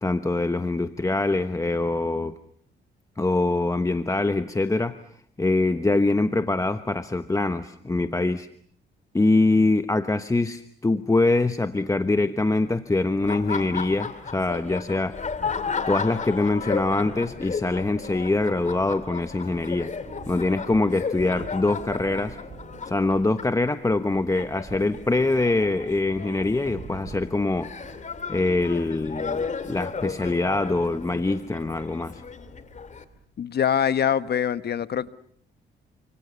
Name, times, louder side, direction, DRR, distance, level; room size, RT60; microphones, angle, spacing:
voice 1, 0.0-2.3 3.2-5.0 5.4-8.5 9.1-15.2 15.9-19.9 20.3-22.4 22.8-27.7 28.3-32.2, left 2 dB, 15° left, 1.1 m, -24 dB
Laughter, 13.2-33.0, left 5 dB, 35° left, 2.5 m, -34 dB
sound 1, 20.1-33.3, right 5 dB, 40° right, 4.9 m, -47 dB
voice 2, 33.4-35.1, left 8 dB, 55° left, 1.3 m, -24 dB
29.5 x 26.5 x 6.9 m
cardioid pair, 90°, 20 cm